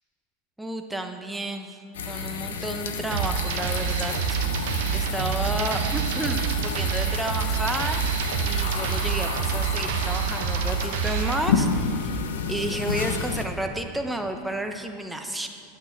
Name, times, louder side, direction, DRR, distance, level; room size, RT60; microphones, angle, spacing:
voice 1, 0.6-1.8 2.1-8.0 8.4-12.2 12.5-15.5, right 1 dB, 5° right, 5 dB, 1.0 m, -31 dB
sound 1, 1.9-13.4, left 5 dB, 85° left, 1.0 m, -31 dB
sound 2, 3.1-11.5, right 7 dB, 70° right, 1.0 m, -27 dB
10.0 x 8.2 x 7.0 m, 2.4 s
hypercardioid pair, 100°, 0 cm